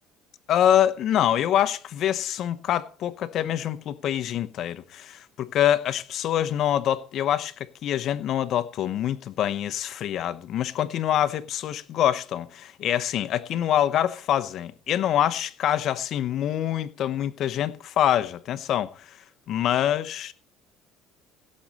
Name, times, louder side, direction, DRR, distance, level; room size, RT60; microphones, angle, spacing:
voice 1, 0.5-19.2 19.5-20.3, left 11 dB, 50° left, 0.9 m, -25 dB
17.0 x 7.5 x 4.2 m
cardioid pair, 145°, 0 cm